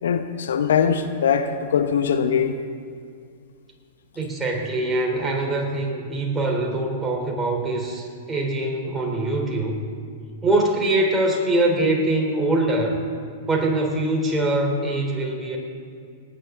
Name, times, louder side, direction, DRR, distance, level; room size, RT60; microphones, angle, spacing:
voice 1, 0.0-2.6, left 7 dB, 70° left, 8 dB, 0.9 m, -21 dB
voice 2, 4.1-9.8 10.4-13.0 13.5-15.6, right 2 dB, 15° right, 0 dB, 3.4 m, -23 dB
29.0 x 9.9 x 3.8 m, 2.2 s
hypercardioid pair, 105°, 0 cm